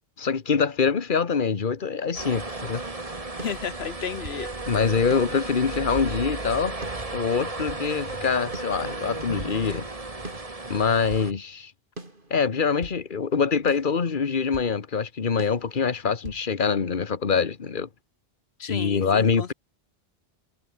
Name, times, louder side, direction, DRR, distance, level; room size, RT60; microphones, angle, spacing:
voice 1, 0.2-3.2 4.7-6.8 7.1-9.9 10.7-11.7 12.3-17.9 18.7-19.5, left 5 dB, 50° left, 1.5 m, -24 dB
sound 1, 2.1-11.3, right 2 dB, 35° right, 2.1 m, -34 dB
voice 2, 3.4-4.5 18.6-19.5, left 7 dB, 80° left, 1.3 m, -33 dB
sound 2, 3.4-4.5 5.1-6.2 6.8-7.9 8.5-9.6 10.2-11.3 12.0-13.0 13.7-14.7 15.4-16.4, right 2 dB, 55° right, 4.6 m, -43 dB
omnidirectional pair, 1.1 m